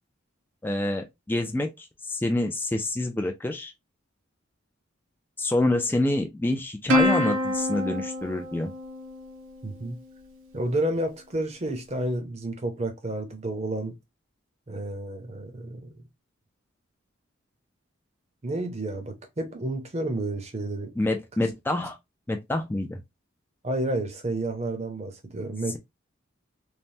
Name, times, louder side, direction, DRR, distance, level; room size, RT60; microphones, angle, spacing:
voice 1, 0.6-3.7 5.4-8.7 21.0-22.0 22.3-23.0, left 1 dB, 10° left, 0.3 m, -27 dB
Plucked string instrument, 6.9-9.6, left 1 dB, 75° right, 0.9 m, -26 dB
voice 2, 9.6-10.0 10.5-13.9 14.7-15.9 18.4-20.9 21.4-21.5 23.6-25.8, right 1 dB, 30° right, 0.7 m, -30 dB
3.2 x 2.1 x 2.6 m
head